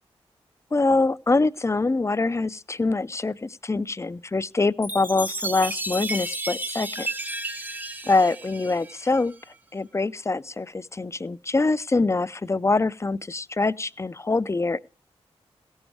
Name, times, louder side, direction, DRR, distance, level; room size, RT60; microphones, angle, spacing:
voice 1, 0.7-7.1 8.1-9.3 9.7-14.8, left 3 dB, 25° left, 0.5 m, -24 dB
Chime, 4.8-9.4, right 2 dB, 15° right, 0.6 m, -33 dB
16.5 x 7.1 x 4.7 m
cardioid pair, 45°, 11 cm